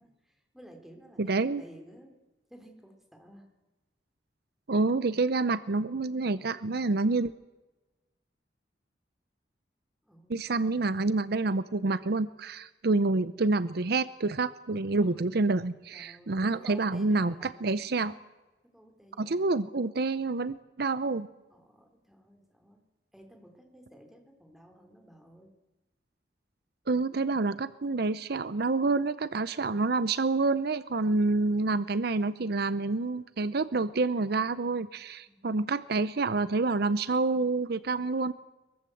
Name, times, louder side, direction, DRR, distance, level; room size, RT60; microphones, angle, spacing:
voice 1, 0.0-2.2 2.5-3.5 10.0-10.4 15.0-15.2 15.9-17.6 18.6-19.7 20.0-20.3 21.5-22.8 23.1-25.5 35.3-35.5, equal, ahead, 3 dB, 3.6 m, -53 dB
voice 2, 1.2-1.6 4.7-7.3 10.3-18.1 19.2-21.3 26.9-38.3, right 3 dB, 65° right, 15 dB, 0.7 m, -28 dB
22.5 x 22.5 x 7.9 m, 1.1 s
head